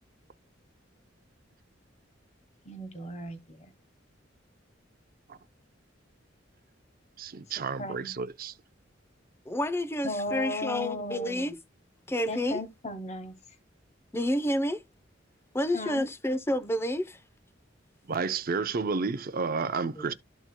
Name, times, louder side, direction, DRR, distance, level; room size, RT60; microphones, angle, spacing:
voice 1, 2.6-3.7 7.8-8.1 10.0-11.5 12.3-13.3 15.7-16.1, left 1 dB, 35° left, 1.3 m, -36 dB
voice 2, 7.2-8.5 18.1-20.1, right 4 dB, 50° right, 0.6 m, -31 dB
voice 3, 9.5-11.6 12.1-12.6 14.1-14.8 15.5-17.2 20.0-20.1, left 1 dB, 15° left, 0.6 m, -29 dB
13.5 x 4.5 x 2.2 m
head